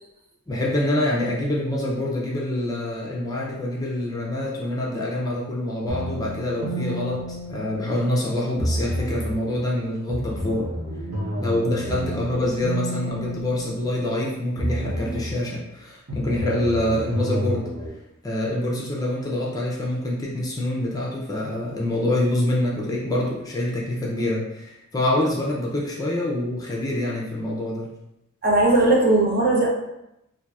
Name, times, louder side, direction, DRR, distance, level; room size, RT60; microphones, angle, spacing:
voice 1, 0.5-10.7 11.4-17.7 18.2-27.9, left 1 dB, 15° left, -4 dB, 0.5 m, -26 dB
sound 1, 5.9-8.1 8.6-9.4 10.1-14.2 14.6-15.4 16.1-17.9, equal, 80° right, 0.8 m, -30 dB
voice 2, 28.4-29.7, right 2 dB, 45° right, -3 dB, 0.8 m, -18 dB
4.4 x 2.6 x 2.4 m, 0.87 s
head